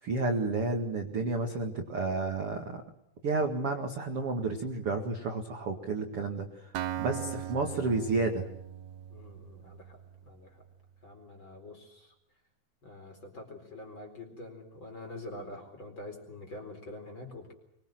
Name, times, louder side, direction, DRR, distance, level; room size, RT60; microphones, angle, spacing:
voice 1, 0.0-2.8 3.2-6.7 7.0-8.5, right 3 dB, 50° right, 4 dB, 1.8 m, -31 dB
Acoustic guitar, 6.7-10.6, right 11 dB, 70° right, 2.5 m, -39 dB
voice 2, 9.1-10.6 11.0-12.1 12.8-17.5, left 2 dB, 25° left, 4 dB, 4.5 m, -46 dB
24.0 x 23.0 x 7.8 m, 0.75 s
omnidirectional pair, 5.6 m